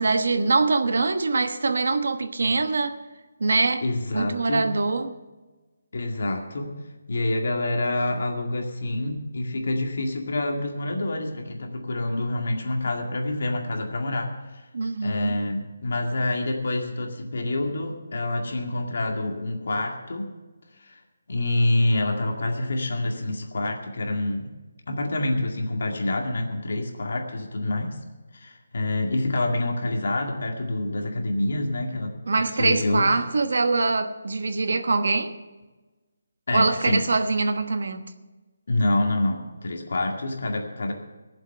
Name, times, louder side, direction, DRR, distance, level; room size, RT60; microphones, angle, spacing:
voice 1, 0.0-3.0 3.4-3.8 4.1-5.2 14.7-15.4 32.3-35.4 36.5-38.1, right 3 dB, 55° right, 1.2 m, -23 dB
voice 2, 3.8-4.7 5.9-6.8 7.1-14.7 15.0-20.3 20.7-21.0 21.3-24.5 24.9-28.0 28.3-32.2 32.6-33.1 36.5-37.0 38.7-40.9, left 2 dB, 50° left, 2.1 m, -27 dB
17.5 x 7.5 x 6.7 m
hypercardioid pair, 180°, 0 cm